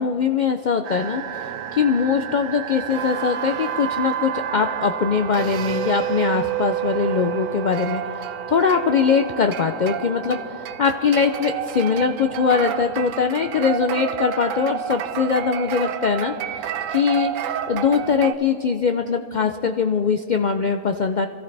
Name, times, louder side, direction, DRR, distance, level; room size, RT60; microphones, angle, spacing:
voice 1, 0.0-1.4 1.7-8.0 8.5-21.3, left 6 dB, 90° left, 7 dB, 0.4 m, -22 dB
sound 1, 0.8-18.3, right 10 dB, 75° right, 1.0 m, -29 dB
26.0 x 14.0 x 3.3 m, 2.7 s
omnidirectional pair, 1.4 m